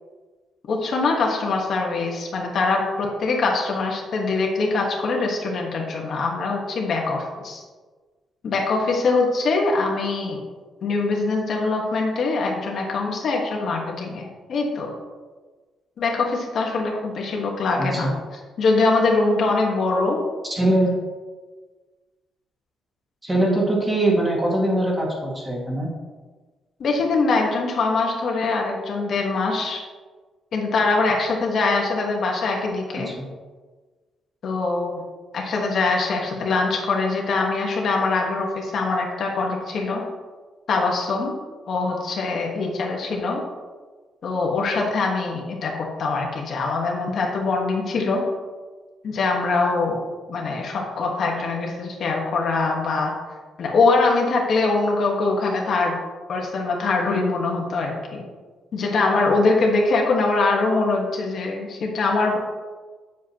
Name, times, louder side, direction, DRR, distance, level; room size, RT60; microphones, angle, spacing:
voice 1, 0.7-7.6 8.4-10.4 10.8-14.9 16.0-18.1 18.6-20.2 26.8-29.8 30.5-33.1 34.4-35.0 35.3-40.0 40.7-41.4 41.7-43.4 44.2-48.2 49.0-50.0 50.3-53.1 53.6-56.0 56.3-58.2 58.7-62.4, left 3 dB, 50° left, 0 dB, 1.3 m, -23 dB
voice 2, 17.8-18.1 20.5-21.0 23.2-25.9 32.9-33.3, right 1 dB, 15° right, -3 dB, 2.0 m, -22 dB
9.1 x 7.6 x 2.9 m, 1.4 s
cardioid pair, 155°, 0 cm